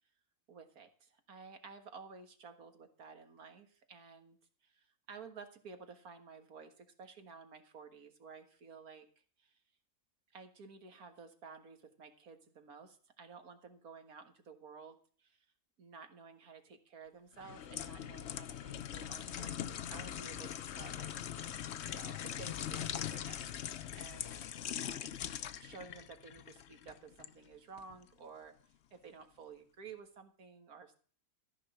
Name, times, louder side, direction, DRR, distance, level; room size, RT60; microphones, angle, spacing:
voice 1, 0.5-4.4 4.6-9.1 9.4-9.6 10.3-15.5 15.8-21.1 21.5-24.4 24.6-25.1 25.6-28.5 28.9-30.9, right 5 dB, 85° right, 7 dB, 2.1 m, -53 dB
sound 1, 17.4-27.3 27.8-28.0, left 10 dB, 60° left, 0.8 m, -42 dB
14.0 x 5.8 x 8.0 m, 0.42 s
omnidirectional pair, 1.5 m